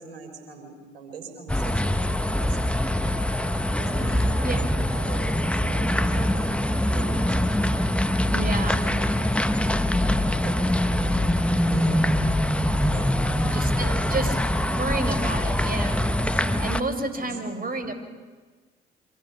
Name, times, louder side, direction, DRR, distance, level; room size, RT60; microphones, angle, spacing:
voice 1, 0.0-3.3 3.8-7.5 8.7-12.0 12.9-14.3 16.3-16.6 17.1-17.7, right 5 dB, 80° right, 5 dB, 4.2 m, -41 dB
sound 1, 1.5-16.8, left 1 dB, 5° left, 1.3 m, -23 dB
voice 2, 8.3-8.8 13.4-14.4 14.7-16.1 16.6-17.9, right 2 dB, 30° right, 8 dB, 4.7 m, -30 dB
28.5 x 25.5 x 5.9 m, 1.4 s
figure-of-eight pair, 45°, 30 cm